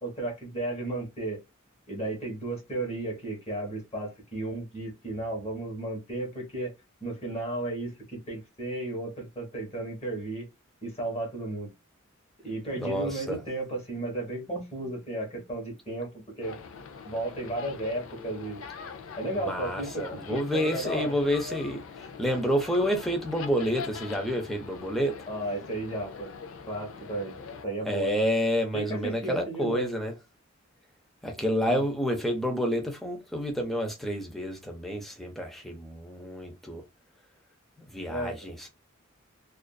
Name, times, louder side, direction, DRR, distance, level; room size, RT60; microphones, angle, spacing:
voice 1, 0.0-1.4 1.9-6.7 7.0-10.5 10.8-11.7 12.4-16.6 17.0-18.6 19.2-21.1 25.3-26.3 26.7-27.4 27.6-28.2 28.7-29.9 31.7-31.8 38.1-38.4, right 2 dB, 30° left, 1.1 m, -34 dB
voice 2, 12.8-13.4 19.3-25.2 27.8-30.1 31.2-36.8 37.9-38.7, equal, ahead, 0.5 m, -29 dB
sound 1, 16.4-27.7, left 5 dB, 85° left, 0.5 m, -43 dB
2.5 x 2.4 x 2.3 m
head